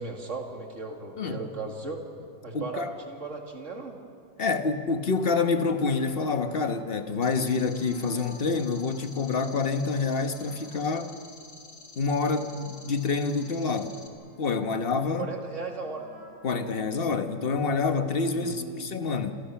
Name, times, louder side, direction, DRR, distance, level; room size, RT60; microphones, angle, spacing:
voice 1, 0.0-2.0 2.4-4.0 15.2-16.1 18.3-18.9, right 3 dB, 40° right, 2 dB, 2.8 m, -36 dB
voice 2, 2.5-3.0 4.4-11.2 12.0-14.0 14.4-15.3 16.4-19.4, left 4 dB, 35° left, 8 dB, 1.2 m, -27 dB
sound 1, 5.0-11.1 11.6-16.4, right 1 dB, 70° right, 8.6 m, -55 dB
sound 2, 7.2-14.1, left 4 dB, 50° left, 2.5 m, -49 dB
28.5 x 26.0 x 5.9 m, 2.3 s
omnidirectional pair, 2.0 m